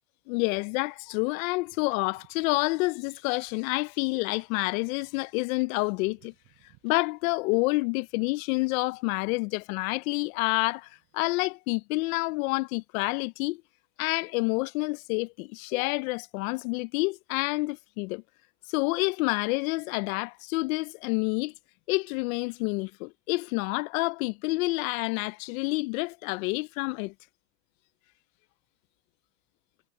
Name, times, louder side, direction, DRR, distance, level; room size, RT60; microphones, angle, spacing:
voice 1, 0.3-6.3 6.8-13.6 14.0-18.2 18.7-21.5 21.9-27.1, left 25 dB, 70° left, 0.6 m, -28 dB
Wind, 1.6-11.5, right 25 dB, 55° right, 7.0 m, -67 dB
supercardioid pair, 140°, 43 cm